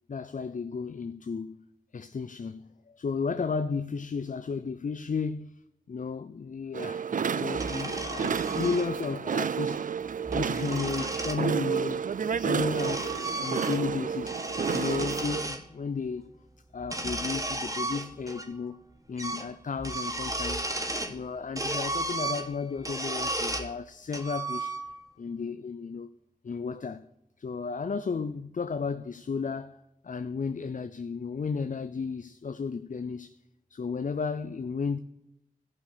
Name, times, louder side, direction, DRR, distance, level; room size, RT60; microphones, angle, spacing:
voice 1, 0.1-1.6 1.9-5.6 5.9-7.0 7.3-9.9 10.3-12.1 12.4-16.3 16.7-20.7 21.1-24.8 25.2-26.1 26.4-27.1 27.4-33.4 33.7-35.0, left 5 dB, 60° left, 0.5 m, -34 dB
sound 1, 6.7-15.5, right 6 dB, 65° right, 0.4 m, -30 dB
sound 2, 7.5-8.9 10.1-11.4 12.3-14.0 14.2-15.6 16.8-18.5 18.7-18.8 19.2-19.5 19.8-21.2 21.6-23.7 24.1-25.1, right 2 dB, 20° right, 1.4 m, -34 dB
14.5 x 5.7 x 6.5 m
wide cardioid pair, 50°, 15 cm